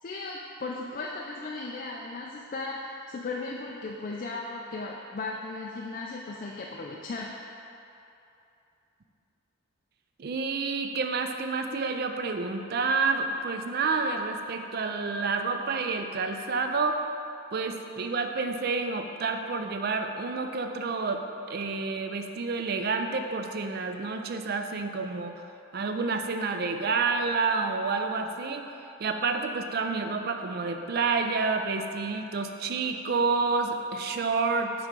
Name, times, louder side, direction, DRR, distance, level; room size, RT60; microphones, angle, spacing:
voice 1, 0.0-7.3, left 3 dB, 40° left, -2 dB, 0.3 m, -36 dB
voice 2, 10.2-17.0 17.5-21.2 21.5-25.4 25.7-28.6 29.0-34.7, right 4 dB, 45° right, 6 dB, 0.4 m, -29 dB
7.2 x 3.5 x 5.2 m, 2.8 s
head